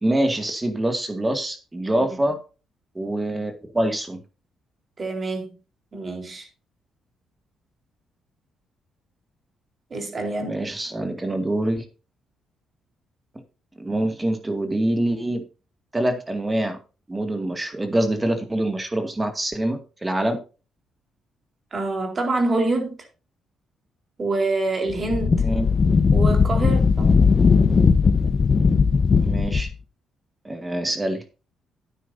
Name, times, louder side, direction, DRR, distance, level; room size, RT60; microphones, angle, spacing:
voice 1, 0.0-2.4 3.0-4.2 10.5-11.8 13.8-15.4 15.9-16.8 17.1-20.4 25.4-25.7 29.2-29.7 30.4-31.2, right 1 dB, 15° right, 2.2 m, -25 dB
voice 2, 5.0-5.5 5.9-6.5 9.9-10.6 21.7-23.0 24.2-25.5 26.1-27.2, right 2 dB, 35° right, 4.0 m, -26 dB
Wind, 24.9-29.7, left 5 dB, 40° left, 1.1 m, -18 dB
12.5 x 9.4 x 2.7 m
cardioid pair, 90°, 0 cm